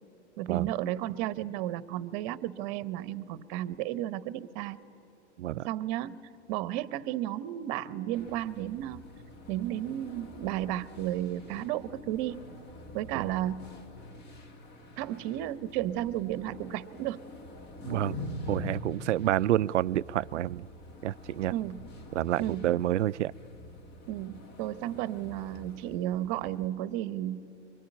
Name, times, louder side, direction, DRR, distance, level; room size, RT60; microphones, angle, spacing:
voice 1, 0.4-4.8 5.5-9.0 9.5-12.5 12.9-13.7 15.0-17.2 21.5-21.9 22.4-22.8 24.1-27.4, right 13 dB, 40° right, 1.0 m, -33 dB
sound 1, 8.1-26.7, left 2 dB, 30° left, 2.2 m, -45 dB
voice 2, 17.8-18.2 18.5-20.7 21.0-21.5 22.1-23.3, right 13 dB, 80° right, 0.5 m, -28 dB
25.0 x 23.0 x 10.0 m
hypercardioid pair, 125°, 35 cm